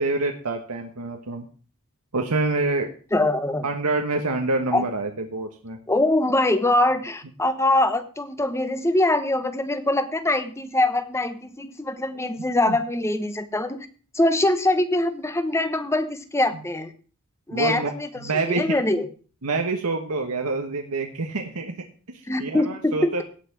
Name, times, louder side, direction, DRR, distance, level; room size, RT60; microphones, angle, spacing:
voice 1, 0.0-1.4 2.1-2.9 3.6-5.8 12.7-12.8 17.5-18.8 19.4-23.2, right 3 dB, 85° right, 3 dB, 1.3 m, -27 dB
voice 2, 3.1-3.6 4.7-4.8 5.9-13.9 14.1-16.9 17.5-18.1 18.5-19.1 22.3-23.2, left 1 dB, 10° left, 10 dB, 1.0 m, -23 dB
16.5 x 5.8 x 6.0 m, 0.40 s
head